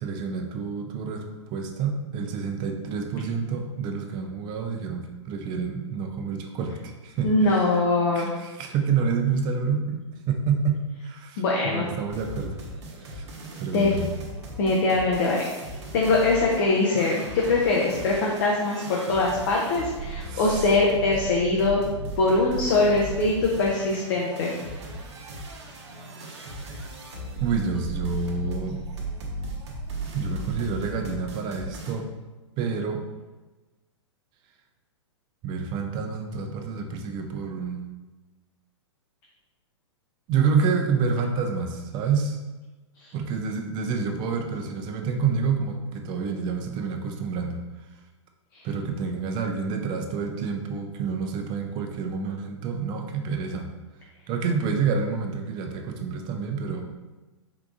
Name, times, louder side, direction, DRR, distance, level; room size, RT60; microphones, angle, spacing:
voice 1, 0.0-7.8 8.1-10.8 11.0-12.6 13.0-13.3 13.6-14.1 20.2-20.7 22.3-22.5 27.4-28.8 30.1-32.1 32.6-33.0 35.4-37.9 40.3-42.4 43.1-47.6 48.6-53.7 54.3-56.8, right 5 dB, 30° right, 4 dB, 0.4 m, -28 dB
voice 2, 7.2-8.3 11.4-11.9 13.7-13.9 14.6-15.4 15.9-21.8 22.2-24.5, left 3 dB, 50° left, -3 dB, 0.6 m, -22 dB
sound 1, 12.1-31.9, right 2 dB, 65° right, 0.8 m, -36 dB
3.8 x 3.4 x 2.4 m, 1.2 s
figure-of-eight pair, 110°, 16 cm